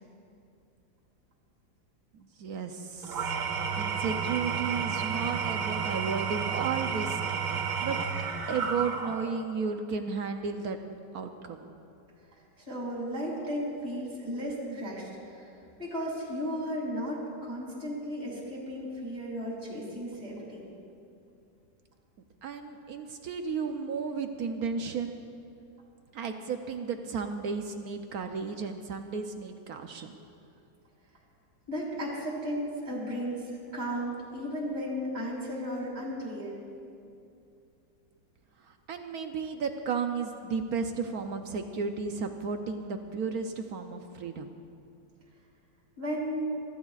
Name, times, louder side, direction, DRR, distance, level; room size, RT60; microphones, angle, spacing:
voice 1, 2.4-3.4 3.8-7.2 7.5-8.0 8.5-10.8 11.1-11.7 22.4-25.2 26.1-30.1 38.6-44.5, right 5 dB, 65° right, 6 dB, 0.9 m, -33 dB
Engine / Tools, 3.0-9.5, right 6 dB, 90° right, 1.8 m, -31 dB
voice 2, 12.6-15.5 15.8-20.6 31.7-36.6 46.0-46.5, equal, 20° right, -5 dB, 2.5 m, -35 dB
23.0 x 14.0 x 2.4 m, 2.6 s
omnidirectional pair, 2.1 m